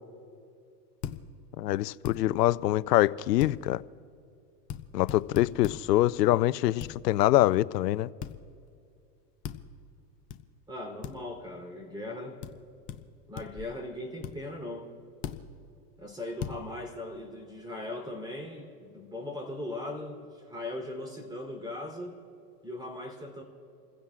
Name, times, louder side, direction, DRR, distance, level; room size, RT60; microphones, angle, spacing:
sound 1, 1.0-1.2 2.0-2.2 3.4-3.6 4.7-4.8 5.1-5.8 6.8-6.9 8.2-8.4 9.4-9.6 10.3-10.4 11.0-11.1 12.4-12.5 12.9-13.0 13.4-13.7 14.2-14.3 15.2-15.4 16.4-16.6, left 10 dB, 20° left, 0.3 m, -37 dB
voice 1, 1.6-3.8 4.9-8.1, left 15 dB, 85° left, 0.6 m, -24 dB
voice 2, 10.7-12.4 13.3-14.9 16.0-22.2 22.6-23.4, left 1 dB, 10° right, 3.3 m, -39 dB
29.5 x 15.5 x 2.4 m
hypercardioid pair, 125°, 47 cm